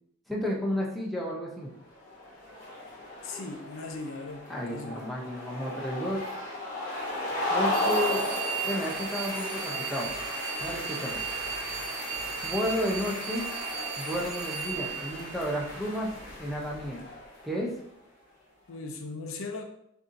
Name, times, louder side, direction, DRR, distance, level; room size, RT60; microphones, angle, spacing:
voice 1, 0.3-1.7 4.5-6.2 7.5-8.2 8.6-10.1 10.6-11.2 12.4-13.4 14.0-16.1 16.4-17.0 17.4-17.7, equal, ahead, -4 dB, 0.6 m, -32 dB
sound 1, 1.9-17.6, left 1 dB, 40° left, 1.0 m, -35 dB
voice 2, 3.2-5.1 18.7-19.6, left 3 dB, 65° left, 5 dB, 0.5 m, -38 dB
sound 2, 7.7-15.9, right 7 dB, 70° right, 0.7 m, -36 dB
6.5 x 2.7 x 2.6 m, 0.74 s
head